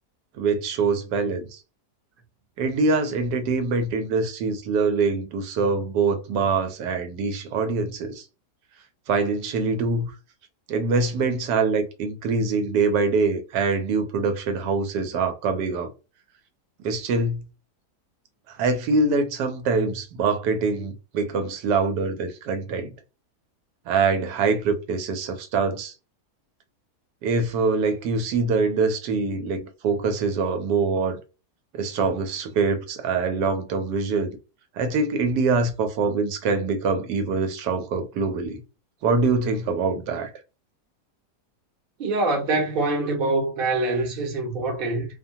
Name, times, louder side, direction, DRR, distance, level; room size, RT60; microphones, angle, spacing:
voice 1, 0.4-1.6 2.6-8.2 9.1-10.1 10.7-15.9 16.8-17.4 18.5-22.9 23.9-25.9 27.2-31.2 31.7-34.4 34.7-38.6 39.0-40.3, right 4 dB, 85° right, 1.2 m, -24 dB
voice 2, 42.0-45.1, right 2 dB, 45° right, 0.8 m, -24 dB
2.8 x 2.2 x 2.6 m
omnidirectional pair, 1.7 m